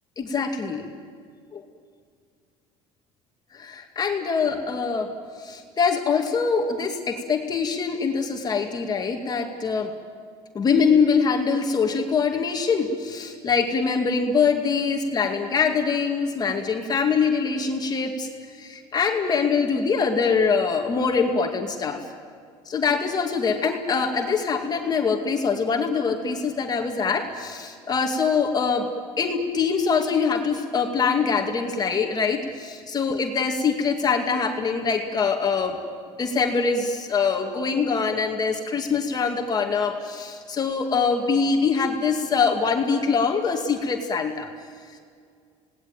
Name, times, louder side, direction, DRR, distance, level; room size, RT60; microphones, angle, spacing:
voice 1, 0.2-0.9 1.5-1.6 3.5-5.1 5.4-9.9 10.5-22.0 22.7-28.9 29.2-35.8 36.2-44.5, left 5 dB, 30° left, 3 dB, 2.3 m, -24 dB
27.5 x 19.0 x 9.1 m, 2.1 s
cardioid pair, 125°, 13 cm